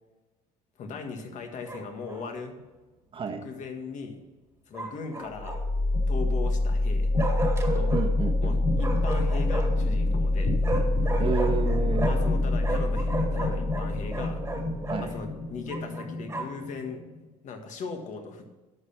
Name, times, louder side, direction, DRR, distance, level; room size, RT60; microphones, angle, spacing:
voice 1, 0.8-2.6 3.4-4.2 4.7-5.6 6.1-7.1 7.7-8.0 8.4-10.6 12.0-14.4 15.0-17.0 17.4-18.5, left 4 dB, 50° left, 5 dB, 1.8 m, -38 dB
Bark, 1.6-2.3 4.7-5.8 7.2-8.1 8.8-9.9 10.6-12.3 12.6-15.0 15.7-16.6, right 3 dB, 15° right, 1.9 m, -34 dB
voice 2, 3.1-3.4 7.9-8.6 11.2-12.1 14.9-15.1, right 6 dB, 35° right, 5 dB, 1.3 m, -31 dB
sound 1, 5.2-17.2, left 2 dB, 85° left, 4.0 m, -26 dB
11.0 x 6.8 x 5.9 m, 1.2 s
cardioid pair, 125°, 16 cm